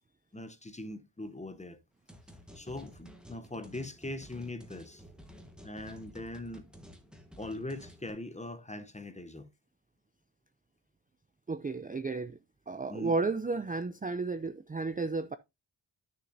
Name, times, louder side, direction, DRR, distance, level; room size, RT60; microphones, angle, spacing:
voice 1, 0.3-1.8 2.5-5.0 5.6-6.6 7.4-9.5 12.9-13.1, left 2 dB, 15° left, 0.7 m, -41 dB
sound 1, 2.1-8.1, equal, ahead, 1.3 m, -52 dB
voice 2, 11.5-12.4 12.7-15.4, right 3 dB, 20° right, 0.4 m, -33 dB
11.0 x 6.6 x 2.6 m
wide cardioid pair, 130°, 46 cm